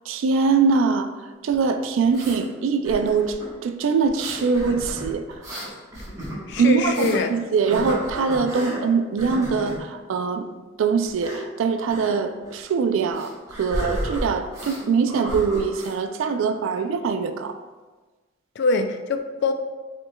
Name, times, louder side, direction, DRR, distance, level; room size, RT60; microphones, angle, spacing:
voice 1, 0.1-1.1 1.4-3.4 3.6-5.2 6.6-10.5 10.8-17.6, right 5 dB, 80° right, 8 dB, 0.3 m, -23 dB
sound 1, 1.5-2.4 2.8-3.5 4.0-7.2 7.6-8.8 9.2-9.8 11.0-11.4 11.9-12.1 12.4-12.6 13.1-14.8 15.1-15.9, right 1 dB, 20° right, 1.1 m, -33 dB
voice 2, 6.5-7.3 18.6-19.5, left 3 dB, 60° left, 7 dB, 0.3 m, -23 dB
5.2 x 3.0 x 2.2 m, 1.3 s
head